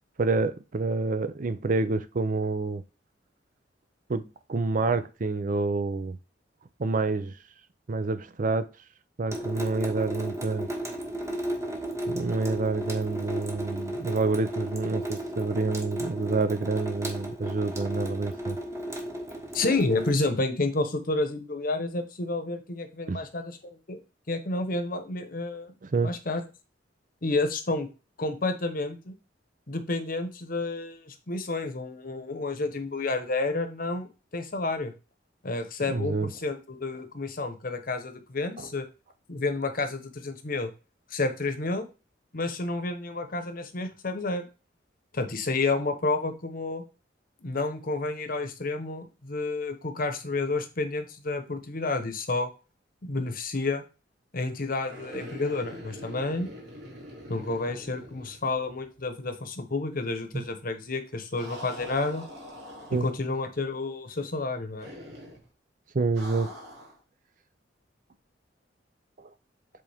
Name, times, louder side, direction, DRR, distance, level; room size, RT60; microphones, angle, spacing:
voice 1, 0.2-2.8 4.1-6.2 6.8-7.3 7.9-8.7 9.2-10.7 12.1-18.6 23.1-23.2 25.8-26.1 35.9-36.3 38.6-38.7 60.3-60.4 62.9-63.1 65.9-66.5, right 3 dB, 45° right, 0.5 m, -28 dB
Water tap faucet / Sink (filling or washing) / Drip, 9.3-20.1, right 1 dB, 15° right, 1.2 m, -34 dB
voice 2, 19.5-24.0 24.3-25.7 26.0-26.4 27.2-27.9 28.2-29.1 29.7-34.9 35.4-38.8 39.3-40.7 41.1-41.9 42.3-44.5 45.1-46.8 47.4-52.5 53.0-53.8 54.3-56.5 57.3-62.2 62.9-64.9, left 3 dB, 50° left, 1.0 m, -30 dB
sound 1, 54.8-59.0 59.2-59.3 61.3-63.4 64.8-65.5 66.1-67.0, equal, 60° right, 2.7 m, -44 dB
7.9 x 3.7 x 3.4 m
head